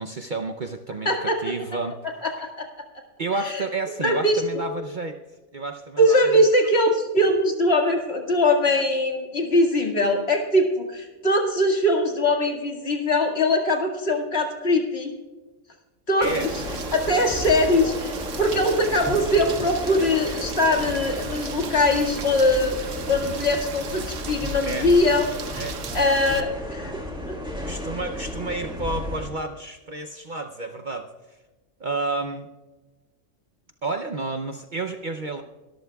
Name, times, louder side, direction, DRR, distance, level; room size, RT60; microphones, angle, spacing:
voice 1, 0.0-2.0 3.2-5.2 5.5-6.5 16.2-16.5 24.6-24.9 25.6-25.8 27.6-31.1 31.8-32.5 33.8-35.4, right 3 dB, 45° right, 6 dB, 0.7 m, -30 dB
voice 2, 1.1-1.4 2.2-2.7 3.4-3.6 4.0-4.7 6.0-15.1 16.1-16.5 16.9-22.8 23.1-25.2 25.5-26.9 27.2-27.3, left 1 dB, 50° left, 2 dB, 2.2 m, -22 dB
sound 1, 16.2-29.3, left 1 dB, 5° right, 2.4 m, -33 dB
Rain, 16.2-26.4, right 6 dB, 70° right, 1.3 m, -37 dB
23.5 x 13.5 x 2.3 m, 1.2 s
omnidirectional pair, 1.4 m